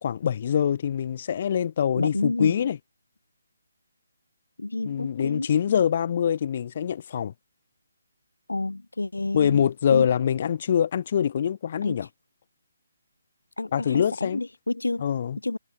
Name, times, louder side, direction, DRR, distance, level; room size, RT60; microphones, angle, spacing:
voice 1, 0.0-2.8 4.8-7.3 9.3-12.1 13.7-14.4 15.0-15.4, left 8 dB, 40° left, 3.0 m, -24 dB
voice 2, 1.9-2.6 4.6-5.5 8.5-9.6 9.9-10.1 11.8-12.0 13.6-15.1 15.4-15.6, left 2 dB, 80° left, 1.0 m, -29 dB
figure-of-eight pair, 145°, 0 cm